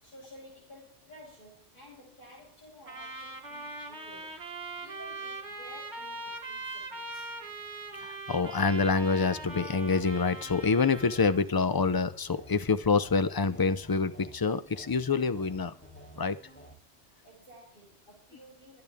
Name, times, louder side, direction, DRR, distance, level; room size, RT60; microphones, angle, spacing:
voice 1, 0.0-4.5 4.8-7.3 17.2-18.8, equal, 45° left, -5 dB, 6.0 m, -53 dB
Trumpet, 2.9-11.4, right 2 dB, 60° right, 3.1 m, -41 dB
voice 2, 8.0-15.7 16.2-16.4, left 4 dB, 25° left, 13 dB, 0.5 m, -27 dB
sound 1, 8.4-16.7, right 1 dB, 10° left, 3.5 m, -51 dB
24.0 x 8.8 x 3.6 m, 0.39 s
omnidirectional pair, 1.2 m